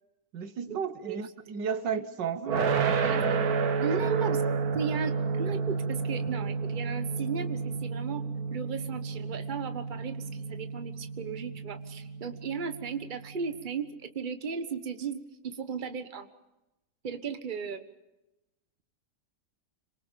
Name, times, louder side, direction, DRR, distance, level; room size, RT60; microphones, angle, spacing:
voice 1, 0.3-3.1 3.9-4.3, right 7 dB, 85° right, 1.9 m, -34 dB
sound 1, 2.5-13.4, right 5 dB, 60° right, 1.7 m, -31 dB
voice 2, 3.8-4.4 4.7-8.2 8.5-16.3 17.0-17.8, right 6 dB, 30° right, 1.4 m, -36 dB
27.0 x 24.5 x 5.2 m
omnidirectional pair, 1.9 m